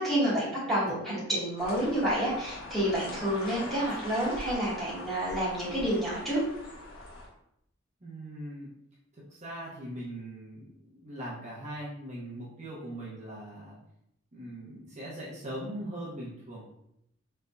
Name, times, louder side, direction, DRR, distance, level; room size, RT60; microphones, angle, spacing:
voice 1, 0.0-6.4, right 1 dB, ahead, -9 dB, 1.4 m, -29 dB
sound 1, 1.6-7.3, left 2 dB, 90° left, 1.0 m, -42 dB
voice 2, 8.0-8.7 9.3-13.8 14.3-16.7, right 1 dB, 35° right, -7 dB, 0.7 m, -40 dB
3.8 x 3.3 x 2.2 m, 0.76 s
head